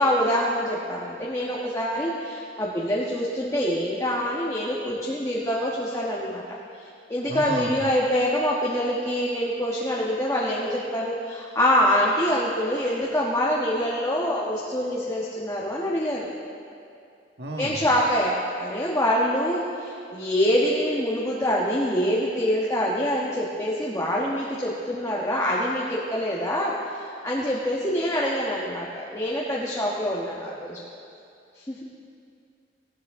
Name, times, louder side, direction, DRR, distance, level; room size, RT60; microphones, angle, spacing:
voice 1, 0.0-16.3 17.6-30.8 31.5-31.8, equal, 20° left, -5 dB, 1.3 m, -25 dB
voice 2, 7.3-7.8 17.4-17.9, right 1 dB, 70° right, 2 dB, 1.6 m, -32 dB
19.5 x 15.5 x 3.7 m, 2.5 s
head